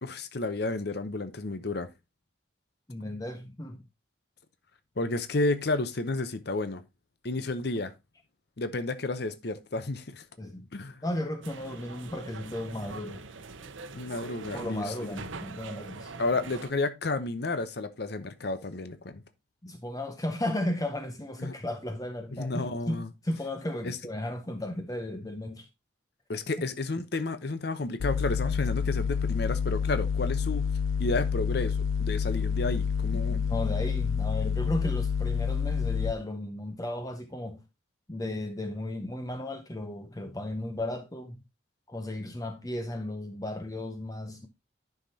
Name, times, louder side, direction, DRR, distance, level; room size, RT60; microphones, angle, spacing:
voice 1, 0.0-1.9 5.0-6.8 7.2-7.9 8.6-10.3 10.7-11.0 13.9-15.1 16.2-19.2 21.4-21.5 22.3-23.1 23.8-24.0 26.3-30.7 31.0-33.4, left 2 dB, 55° left, 0.7 m, -31 dB
voice 2, 2.9-3.8 10.4-10.6 11.0-13.2 14.5-16.1 19.6-25.7 33.1-37.6 38.1-41.4 41.9-44.5, left 1 dB, 20° left, 0.7 m, -35 dB
sound 1, 11.4-16.7, right 4 dB, 80° right, 0.8 m, -43 dB
sound 2, 28.0-36.1, left 6 dB, 80° left, 0.4 m, -28 dB
10.5 x 5.7 x 2.8 m
head